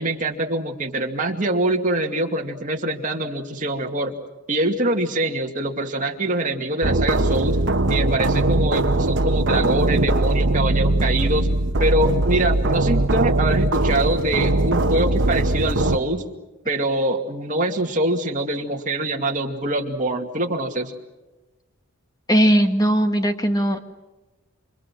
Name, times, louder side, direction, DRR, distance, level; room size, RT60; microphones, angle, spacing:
voice 1, 0.0-4.2 4.5-7.6 7.9-11.5 11.8-16.2 16.7-20.9, right 1 dB, 35° right, 2 dB, 2.4 m, -24 dB
sound 1, 6.8-16.0, right 2 dB, 55° right, 1.2 m, -20 dB
voice 2, 22.3-23.8, equal, 15° left, 6 dB, 1.7 m, -18 dB
28.5 x 26.5 x 6.2 m, 1.1 s
head